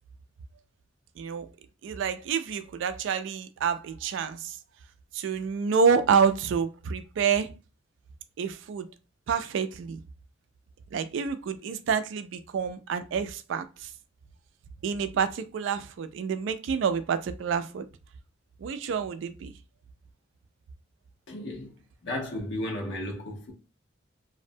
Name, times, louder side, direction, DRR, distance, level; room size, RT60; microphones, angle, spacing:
voice 1, 1.8-4.6 5.1-7.5 8.4-8.9 9.3-10.0 10.9-13.9 14.8-17.9 18.6-19.5, right 6 dB, 80° right, 0.3 m, -28 dB
voice 2, 21.3-21.7 22.0-23.5, left 1 dB, 80° left, 0.8 m, -34 dB
2.6 x 2.1 x 2.6 m
head